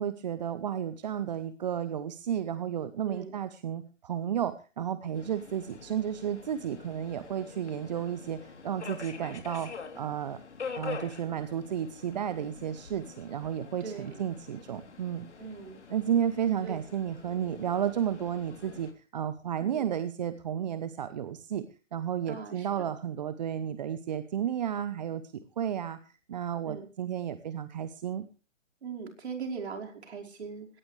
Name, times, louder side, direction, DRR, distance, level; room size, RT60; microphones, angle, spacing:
voice 1, 0.0-10.4 10.7-15.3 15.9-21.7 21.9-28.3, right 9 dB, 35° right, 13 dB, 1.0 m, -32 dB
voice 2, 3.1-3.4 13.8-14.2 15.4-15.8 16.6-16.9 19.6-19.9 22.3-22.9 26.7-26.9 28.8-30.8, right 5 dB, 55° right, 1 dB, 5.1 m, -40 dB
Subway metro underground, 5.1-18.9, left 5 dB, 60° left, 3.4 m, -45 dB
19.0 x 17.5 x 3.3 m, 0.35 s
figure-of-eight pair, 140°, 38 cm